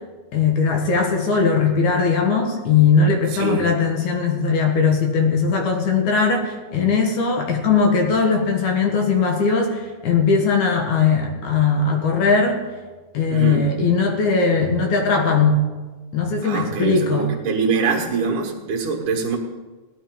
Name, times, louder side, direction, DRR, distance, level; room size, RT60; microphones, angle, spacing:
voice 1, 0.3-12.6 13.1-15.6 16.1-17.3, left 5 dB, 65° left, 3 dB, 2.6 m, -19 dB
voice 2, 3.3-3.7 13.3-13.7 16.4-19.4, right 5 dB, 70° right, 1 dB, 2.9 m, -23 dB
17.5 x 11.0 x 3.8 m, 1.3 s
omnidirectional pair, 3.8 m